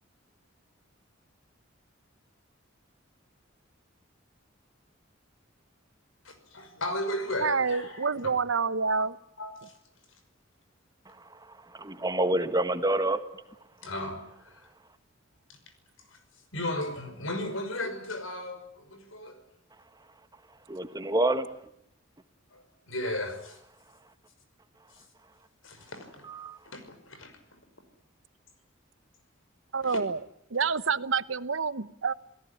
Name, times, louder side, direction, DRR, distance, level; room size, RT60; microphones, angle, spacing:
voice 1, 6.2-8.3 9.4-9.7 13.8-14.7 15.5-15.6 16.1-16.2 16.5-19.4 22.5-23.6 24.9-25.0 25.6-26.2 26.7-27.3 29.8-30.0, left 1 dB, 90° left, 5.8 m, -35 dB
voice 2, 7.4-9.2 29.7-30.2 30.5-32.1, right 5 dB, 75° right, 1.0 m, -28 dB
voice 3, 11.1-13.2 20.7-21.5 26.2-26.6, right 2 dB, 20° right, 1.6 m, -28 dB
29.0 x 17.5 x 9.9 m
head